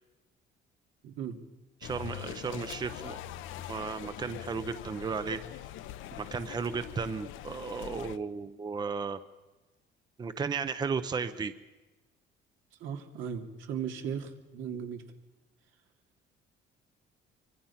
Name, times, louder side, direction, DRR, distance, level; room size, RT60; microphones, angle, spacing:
voice 1, 1.0-1.4 12.8-15.0, right 7 dB, 80° right, 4 dB, 2.7 m, -37 dB
sound 1, 1.8-8.2, left 12 dB, 80° left, 1.0 m, -43 dB
voice 2, 1.8-3.2 3.7-5.4 6.1-9.2 10.2-11.5, right 5 dB, 20° right, 11 dB, 0.8 m, -34 dB
24.5 x 24.5 x 5.9 m, 1.1 s
cardioid pair, 155°, 20 cm